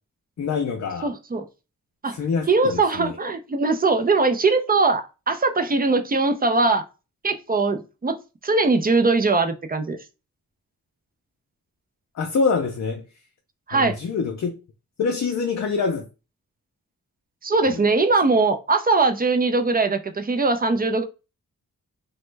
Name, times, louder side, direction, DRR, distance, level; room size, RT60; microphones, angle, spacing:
voice 1, 0.4-1.1 2.1-3.2 12.1-13.0 13.7-14.6 15.0-16.1 17.7-17.9, left 5 dB, 55° left, 0.5 m, -25 dB
voice 2, 1.0-1.5 2.0-2.2 2.5-6.8 7.2-8.2 8.4-10.0 13.7-14.0 17.4-21.0, right 3 dB, 25° right, 0.4 m, -21 dB
3.0 x 2.2 x 3.2 m
wide cardioid pair, 115°, 34 cm